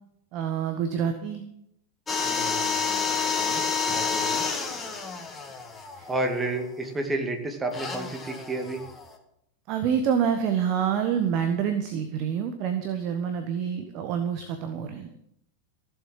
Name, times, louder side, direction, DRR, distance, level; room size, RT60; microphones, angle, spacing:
voice 1, 0.3-1.4 3.9-4.0 6.0-6.1 9.7-15.1, right 8 dB, 40° right, 7 dB, 1.4 m, -27 dB
sound 1, 2.1-6.6 7.7-9.1, left 5 dB, 15° left, 2.1 m, -29 dB
voice 2, 2.2-3.6 3.9-4.5 6.1-8.8, right 2 dB, 15° right, 4 dB, 2.3 m, -31 dB
15.0 x 7.6 x 7.6 m, 0.77 s
figure-of-eight pair, 90°, 0 cm